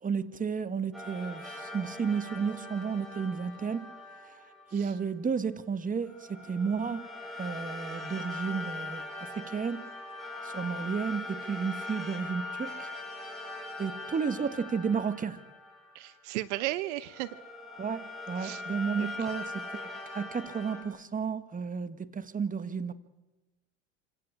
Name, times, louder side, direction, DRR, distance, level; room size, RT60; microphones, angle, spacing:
voice 1, 0.0-3.9 4.3-4.4 4.7-7.1 7.4-9.9 10.4-12.9 13.8-15.4 17.8-22.9, right 6 dB, 25° right, 1.6 m, -32 dB
sound 1, 0.9-5.1 6.0-16.5 17.0-20.8, left 2 dB, ahead, 7.5 m, -41 dB
voice 2, 15.9-17.4 18.4-18.6 19.0-19.1, right 17 dB, 75° right, 1.0 m, -35 dB
27.0 x 16.5 x 8.7 m
hypercardioid pair, 85°, 35 cm